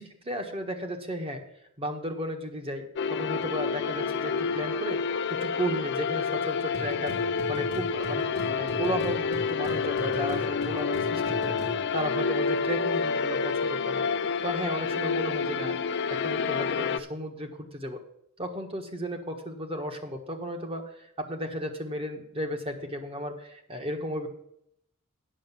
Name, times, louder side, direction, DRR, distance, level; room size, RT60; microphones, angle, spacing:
voice 1, 0.0-1.4 1.8-5.0 5.3-11.6 11.9-15.8 16.1-18.0 18.4-24.3, equal, 25° right, 4 dB, 1.4 m, -34 dB
sound 1, 3.0-17.0, left 5 dB, 55° left, 0.5 m, -29 dB
sound 2, 6.7-11.9, right 1 dB, 70° right, 3.1 m, -40 dB
9.0 x 6.5 x 7.3 m, 0.73 s
head